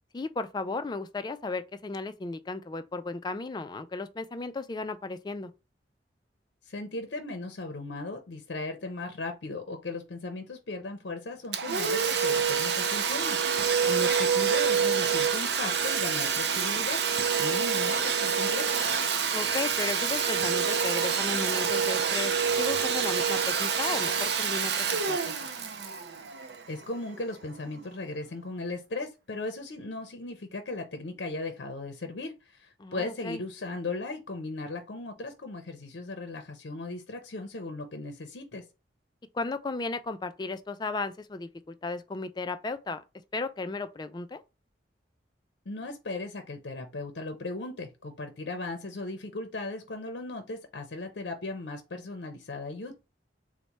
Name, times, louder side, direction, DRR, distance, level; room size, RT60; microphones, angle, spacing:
voice 1, 0.1-5.5 13.8-13.9 14.3-14.4 19.3-25.3 32.8-33.4 39.3-43.0 43.3-44.4, left 3 dB, 25° left, 0.3 m, -35 dB
voice 2, 6.6-18.7 26.7-38.6 45.7-53.0, left 2 dB, 70° left, 0.6 m, -37 dB
Domestic sounds home sounds, 11.5-27.0, right 6 dB, 70° right, 0.5 m, -27 dB
4.1 x 2.1 x 4.5 m
head